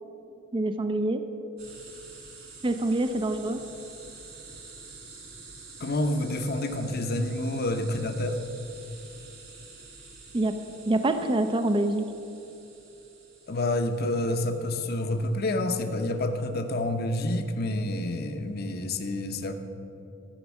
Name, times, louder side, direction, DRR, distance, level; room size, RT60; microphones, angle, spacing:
voice 1, 0.5-1.2 2.6-3.6 10.3-10.6 10.9-12.1, right 2 dB, 25° right, 9 dB, 0.4 m, -25 dB
sound 1, 1.6-16.1, right 3 dB, 55° right, 2.7 m, -48 dB
voice 2, 5.8-8.4 13.5-19.5, left 1 dB, 50° left, 6 dB, 0.7 m, -28 dB
13.0 x 5.2 x 7.2 m, 2.9 s
head